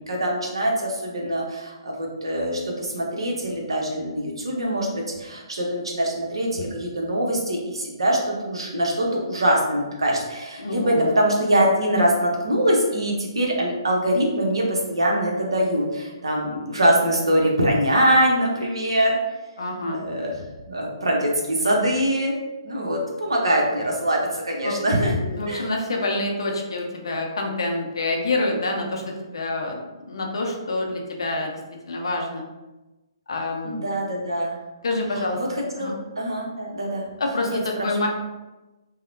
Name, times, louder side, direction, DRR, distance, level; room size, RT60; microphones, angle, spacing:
voice 1, 0.0-19.2 19.9-20.3 20.7-22.3 22.6-25.2 25.5-25.6 33.6-34.6 35.4-37.1 37.5-37.9, right 1 dB, 80° right, -1 dB, 0.7 m, -23 dB
voice 2, 10.6-11.1 19.6-20.0 24.6-24.8 25.2-29.8 30.1-31.5 31.8-32.4 33.3-33.9 34.8-35.4 35.8-35.9 37.2-38.1, left 2 dB, 70° left, 1 dB, 0.5 m, -27 dB
2.8 x 2.0 x 2.5 m, 1.1 s
figure-of-eight pair, 130°, 3 cm